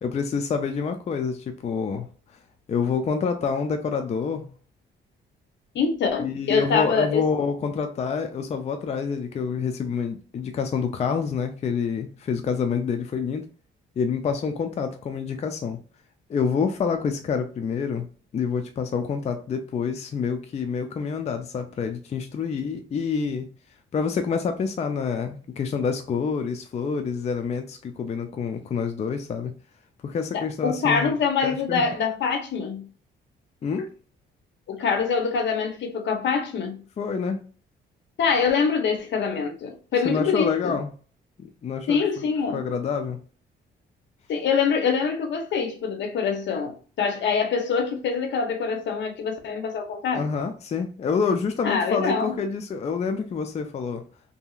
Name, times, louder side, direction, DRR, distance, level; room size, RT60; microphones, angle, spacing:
voice 1, 0.0-2.1 2.7-4.5 6.2-13.4 14.0-15.8 16.3-18.1 18.3-23.5 23.9-29.5 30.0-31.9 33.6-33.9 37.0-37.4 40.0-40.9 41.4-42.0 42.5-43.2 50.1-54.0, left 5 dB, 35° left, 0.4 m, -27 dB
voice 2, 5.7-7.2 30.3-32.9 34.7-36.8 38.2-40.8 41.9-42.6 44.3-50.2 51.6-52.4, left 5 dB, 65° left, 0.7 m, -25 dB
2.8 x 2.7 x 2.3 m
cardioid pair, 90°, 20 cm